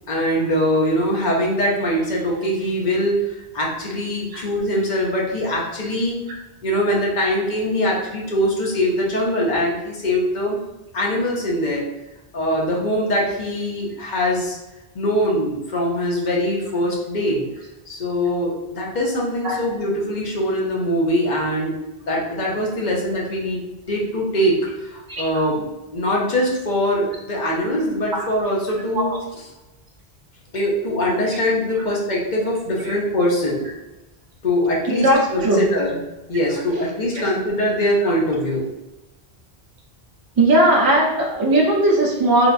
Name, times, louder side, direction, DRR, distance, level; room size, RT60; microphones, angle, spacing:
voice 1, 0.1-6.2 6.6-10.6 10.9-11.8 12.3-14.6 14.9-17.4 17.9-25.7 25.9-29.1 29.4-29.5 30.5-33.6 34.4-36.0 36.3-38.7, equal, 50° left, -3 dB, 0.8 m, -22 dB
voice 2, 34.9-35.6 38.0-38.1 40.4-42.5, right 1 dB, 30° right, -2 dB, 0.4 m, -18 dB
3.3 x 2.3 x 2.4 m, 1.0 s
omnidirectional pair, 1.1 m